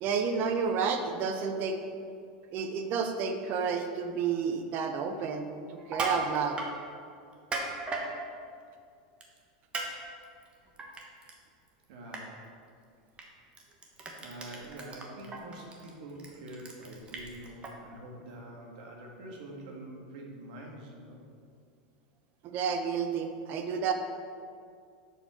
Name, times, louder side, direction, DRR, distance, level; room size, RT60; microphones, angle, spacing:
voice 1, 0.0-1.8 2.5-6.6 22.4-23.9, right 6 dB, 45° right, 6 dB, 0.7 m, -31 dB
Crushing, 5.8-6.7 7.3-8.1 9.2-9.4 9.7-9.9 10.2-11.3 11.7-11.8 12.1-12.2 13.2-13.3 13.5-17.7, right 3 dB, 25° right, 1.1 m, -36 dB
voice 2, 11.9-12.4 14.2-21.2, right 1 dB, 70° right, 0 dB, 1.5 m, -45 dB
7.1 x 4.2 x 5.7 m, 2.3 s
supercardioid pair, 125°, 5 cm